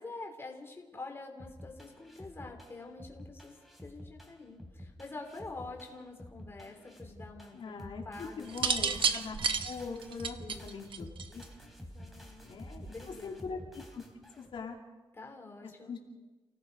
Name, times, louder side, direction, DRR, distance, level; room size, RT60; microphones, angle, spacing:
voice 1, 0.0-3.6 3.8-8.8 10.4-10.7 11.9-12.5 12.9-13.6 15.1-16.0, left 3 dB, 25° left, 2 dB, 3.3 m, -46 dB
Short Hip-Hop Song, 1.4-14.6, left 1 dB, ahead, 3.5 m, -50 dB
voice 2, 7.5-9.4 9.6-11.4 12.4-14.0 14.4-14.8 15.6-16.0, left 5 dB, 60° left, -1 dB, 2.8 m, -42 dB
sound 1, 8.5-11.6 12.7-13.1, right 6 dB, 60° right, 1.1 m, -31 dB
29.0 x 17.5 x 5.3 m, 1.2 s
wide cardioid pair, 140°, 10 cm